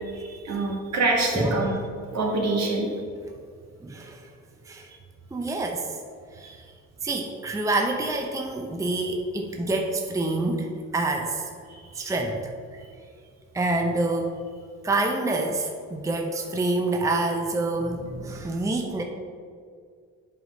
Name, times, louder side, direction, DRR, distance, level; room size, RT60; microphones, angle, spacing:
voice 1, 0.1-1.7 2.1-3.0 6.4-6.5 11.7-12.0, right 2 dB, 60° right, -1 dB, 1.8 m, -26 dB
voice 2, 1.3-1.9 3.8-4.3 4.7-4.9 5.3-5.9 6.3-6.7 7.0-11.5 11.9-12.8 13.5-14.4 14.8-19.0, right 2 dB, 10° right, 2 dB, 0.6 m, -27 dB
7.6 x 4.0 x 5.1 m, 2.1 s
cardioid pair, 90°, 30 cm